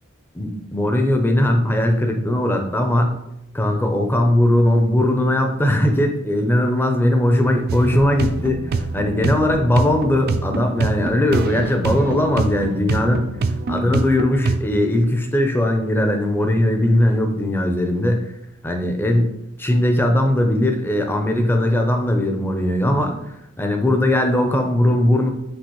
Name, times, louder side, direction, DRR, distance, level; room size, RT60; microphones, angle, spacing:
voice 1, 0.3-3.2 3.5-13.3 13.7-18.3 18.6-19.3 19.6-25.3, left 1 dB, 10° left, 3 dB, 0.5 m, -19 dB
sound 1, 7.7-14.6, right 3 dB, 50° right, 0.3 m, -25 dB
6.1 x 2.5 x 3.0 m, 0.82 s
head